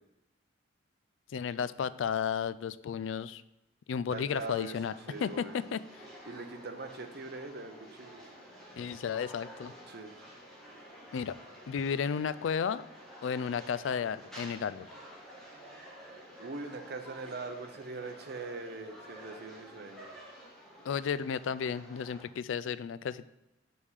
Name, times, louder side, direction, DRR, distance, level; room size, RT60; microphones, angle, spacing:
voice 1, 1.3-3.4 3.9-4.9 5.2-5.8 8.8-9.7 11.1-11.4 11.7-12.8 13.2-14.9 20.8-23.3, left 7 dB, 85° left, 15 dB, 0.3 m, -33 dB
voice 2, 4.1-4.7 5.1-5.6 6.3-8.2 9.9-10.2 16.4-20.1, right 3 dB, 60° right, 6 dB, 0.9 m, -42 dB
sound 1, 4.4-22.2, equal, 5° left, 2.0 m, -51 dB
7.0 x 5.4 x 4.8 m, 0.96 s
head